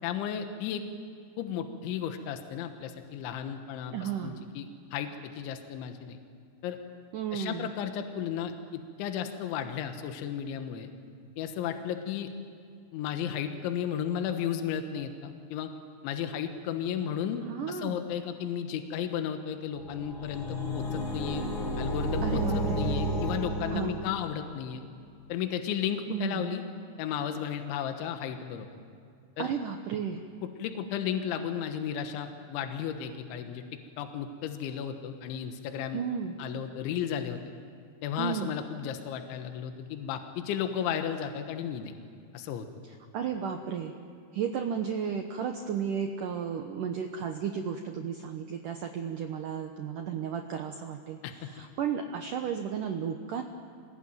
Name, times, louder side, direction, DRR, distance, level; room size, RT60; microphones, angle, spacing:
voice 1, 0.0-0.9 1.4-6.2 6.6-6.8 7.3-10.9 11.4-12.3 12.9-15.7 16.0-21.4 21.8-22.4 22.8-24.8 25.3-26.6 27.0-28.7 29.4-29.5 30.4-36.0 36.4-37.4 38.0-41.9 42.3-42.7 51.2-51.3, left 9 dB, 80° left, 6 dB, 3.6 m, -34 dB
voice 2, 3.9-4.4 7.1-7.7 17.5-18.0 22.2-22.9 23.7-24.0 26.1-26.5 29.4-30.2 35.9-36.3 38.2-38.5 43.1-43.9 44.3-53.4, right 7 dB, 90° right, 5 dB, 1.8 m, -33 dB
sound 1, 19.8-24.4, equal, 45° left, 1.6 m, -31 dB
27.0 x 20.5 x 9.2 m, 2.3 s
omnidirectional pair, 5.5 m